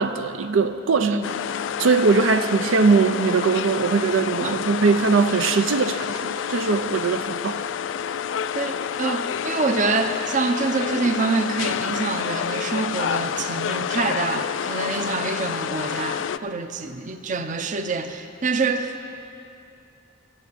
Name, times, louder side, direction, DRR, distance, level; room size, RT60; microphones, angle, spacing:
voice 1, 0.0-1.2 1.8-7.6, right 4 dB, 85° right, 9 dB, 0.5 m, -21 dB
voice 2, 1.0-1.3 4.4-4.6 8.5-19.1, right 4 dB, 40° right, 7 dB, 0.7 m, -26 dB
sound 1, 1.2-16.4, left 8 dB, 70° left, 0.3 m, -28 dB
13.0 x 8.1 x 8.5 m, 2.6 s
head